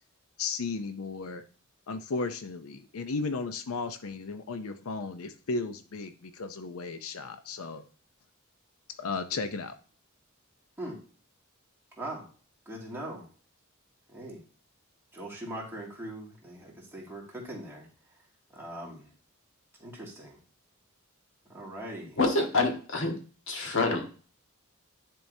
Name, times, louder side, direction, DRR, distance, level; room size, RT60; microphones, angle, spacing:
voice 1, 0.4-1.5 1.9-7.8 9.0-9.7, left 4 dB, 85° left, 10 dB, 0.6 m, -35 dB
voice 2, 12.0-12.3 12.7-13.3 14.1-14.4 15.1-17.9 18.5-19.1 19.8-20.4 21.5-22.2, right 1 dB, 10° right, -4 dB, 2.3 m, -41 dB
voice 3, 22.2-23.1 23.5-24.0, left 3 dB, 65° left, 3 dB, 1.5 m, -26 dB
10.5 x 4.6 x 2.7 m, 0.39 s
head